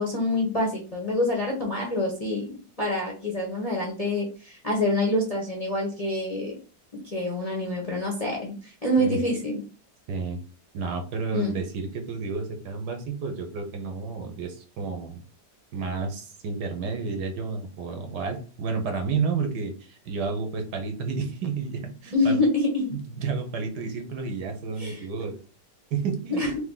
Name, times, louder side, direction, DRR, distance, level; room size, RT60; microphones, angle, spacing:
voice 1, 0.0-2.5 2.8-6.5 7.0-9.6 11.3-11.5 22.1-22.9 24.8-25.0 26.3-26.5, left 1 dB, 30° left, -1 dB, 0.8 m, -26 dB
voice 2, 10.1-10.4 10.7-15.2 15.7-22.4 22.9-25.3 25.9-26.5, right 4 dB, 70° right, 5 dB, 1.3 m, -31 dB
3.5 x 2.9 x 3.7 m, 0.36 s
omnidirectional pair, 2.0 m